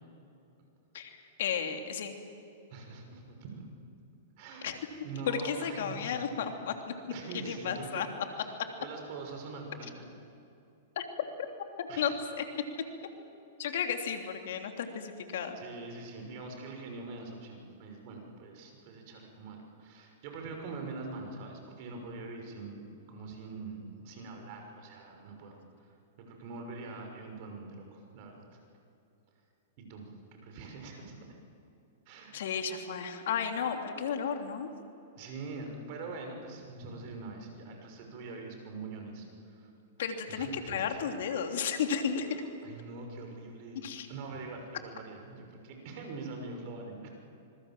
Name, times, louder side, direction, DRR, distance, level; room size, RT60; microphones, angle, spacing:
voice 1, 0.9-2.1 4.6-4.8 5.3-6.9 7.3-8.1 10.9-11.0 11.8-12.4 13.6-15.6 32.3-34.7 40.0-42.3 43.8-44.1, left 7 dB, 65° left, 5 dB, 3.0 m, -33 dB
voice 2, 2.7-3.7 4.4-4.7 5.0-6.5 7.1-8.1 8.4-10.1 11.9-12.1 15.6-22.8 23.1-25.6 26.2-28.5 29.8-31.2 32.1-32.4 35.2-39.3 39.6-39.7 40.3-40.8 42.6-47.1, right 3 dB, 50° right, 3 dB, 6.2 m, -43 dB
26.0 x 21.5 x 7.7 m, 2.8 s
hypercardioid pair, 110°, 0 cm